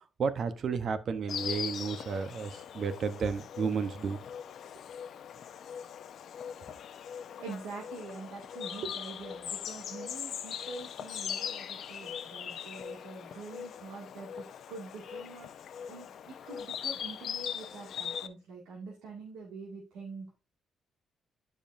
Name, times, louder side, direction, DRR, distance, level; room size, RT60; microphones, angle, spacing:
voice 1, 0.2-4.2 8.8-8.9, right 5 dB, 55° right, 0.9 m, -32 dB
Insect, 1.3-18.3, left 8 dB, 65° left, 0.6 m, -40 dB
voice 2, 7.4-20.3, right 4 dB, 85° right, 2.2 m, -45 dB
11.0 x 5.2 x 2.6 m
cardioid pair, 90°, 0 cm